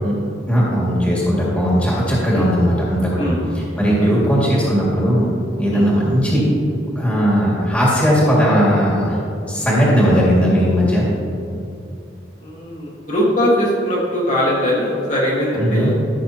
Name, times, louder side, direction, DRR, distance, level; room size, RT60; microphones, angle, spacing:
voice 1, 0.5-5.3 5.6-6.5 7.0-9.2 9.5-11.1 15.6-15.9, equal, 5° left, -6 dB, 1.9 m, -17 dB
voice 2, 12.4-15.9, equal, 40° left, -6 dB, 1.5 m, -21 dB
14.0 x 6.4 x 2.8 m, 2.6 s
head